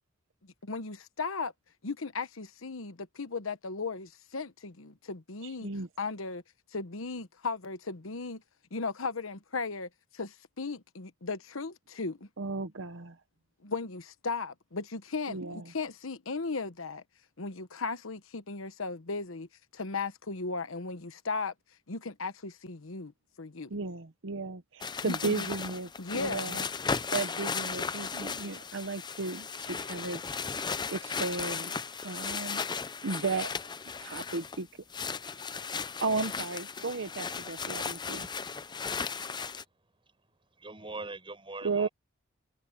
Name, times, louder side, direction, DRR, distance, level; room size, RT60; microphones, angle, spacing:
voice 1, 0.6-1.5 1.8-5.7 6.0-6.4 6.7-8.4 8.7-12.3 13.6-17.0 17.4-19.5 19.7-21.5 21.9-23.1 23.4-23.7 25.0-25.5 26.0-26.6, left 4 dB, 75° left, 1.1 m, -36 dB
voice 2, 5.4-5.9 12.4-13.2 15.3-15.6 23.7-26.7 27.1-30.2 30.9-31.7 32.0-32.6 33.0-33.5 34.0-34.7 36.0-38.3 41.6-41.9, right 4 dB, 65° right, 0.9 m, -34 dB
sound 1, 24.8-34.6 34.9-39.6, left 5 dB, 20° left, 0.6 m, -36 dB
voice 3, 40.6-41.9, right 3 dB, 25° right, 6.1 m, -41 dB
head